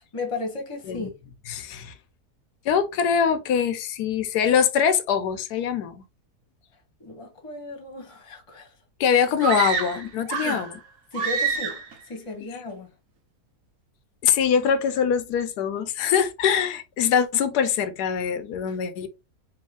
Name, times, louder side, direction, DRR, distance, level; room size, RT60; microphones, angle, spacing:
voice 1, 0.1-1.1 7.0-8.7 10.4-10.6 11.1-12.9 18.7-18.8, left 3 dB, 25° left, 1.0 m, -35 dB
voice 2, 1.5-1.9 2.7-6.0 9.0-10.7 14.2-19.1, left 7 dB, 85° left, 1.2 m, -23 dB
sound 1, 9.4-10.8 11.1-11.9, right 5 dB, 60° right, 1.1 m, -27 dB
3.3 x 3.0 x 3.6 m
omnidirectional pair, 1.7 m